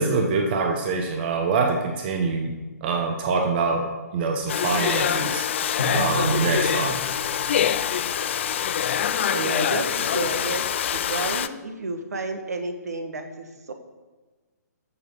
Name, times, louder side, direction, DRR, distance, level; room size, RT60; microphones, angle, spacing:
voice 1, 0.0-5.4 5.9-7.0, right 4 dB, 35° right, 4 dB, 1.2 m, -25 dB
Domestic sounds home sounds, 4.5-11.5, left 9 dB, 40° left, 0.5 m, -25 dB
Bowed string instrument, 5.8-8.6, equal, 60° left, 1.4 m, -34 dB
voice 2, 9.3-13.7, right 2 dB, 65° right, 6 dB, 1.7 m, -31 dB
14.0 x 6.6 x 5.3 m, 1.3 s
figure-of-eight pair, 130°, 9 cm